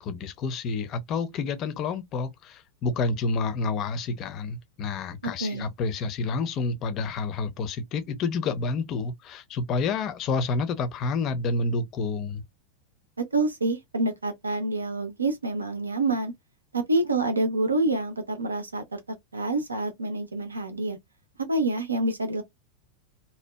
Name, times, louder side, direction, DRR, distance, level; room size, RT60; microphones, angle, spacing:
voice 1, 0.0-12.4, left 4 dB, 35° left, 0.5 m, -29 dB
voice 2, 5.2-5.7 13.2-16.3 16.7-19.0 19.3-21.0 21.4-22.4, right 2 dB, 75° right, 0.5 m, -27 dB
2.7 x 2.1 x 2.2 m
figure-of-eight pair, 90°, 0 cm